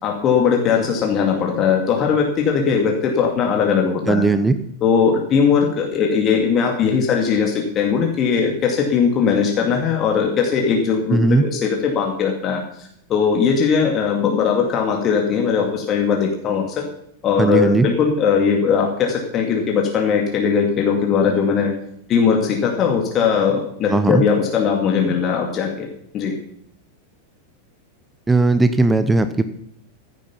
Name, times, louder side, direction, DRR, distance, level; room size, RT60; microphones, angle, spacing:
voice 1, 0.0-4.2 4.8-16.8 17.2-21.7 22.1-25.9 26.1-26.4, left 6 dB, 30° left, 1 dB, 2.5 m, -19 dB
voice 2, 4.1-4.6 11.1-11.5 17.4-17.9 23.9-24.2 28.3-29.4, right 3 dB, 10° right, 11 dB, 0.8 m, -17 dB
15.0 x 11.0 x 5.8 m, 0.69 s
figure-of-eight pair, 90°, 0 cm